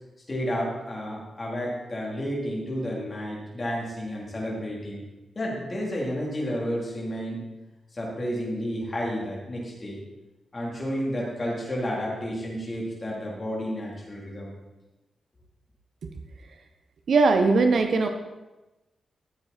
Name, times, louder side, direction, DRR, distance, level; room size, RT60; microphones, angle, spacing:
voice 1, 0.3-5.0 5.4-7.4 7.9-10.0 10.5-14.5, equal, 25° left, -4 dB, 3.7 m, -31 dB
voice 2, 17.1-18.1, right 3 dB, 60° right, 5 dB, 1.1 m, -19 dB
14.0 x 7.8 x 4.4 m, 1.1 s
wide cardioid pair, 140°, 0 cm